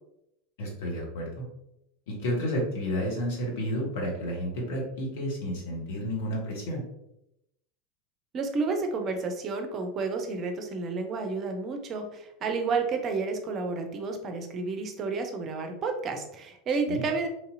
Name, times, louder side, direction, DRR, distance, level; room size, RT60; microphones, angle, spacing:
voice 1, 0.6-1.4 2.1-6.8 16.9-17.0, equal, 60° left, -1 dB, 1.0 m, -31 dB
voice 2, 8.3-17.3, right 4 dB, 35° right, 5 dB, 0.5 m, -31 dB
3.1 x 2.7 x 2.5 m, 0.82 s
figure-of-eight pair, 80°, 0 cm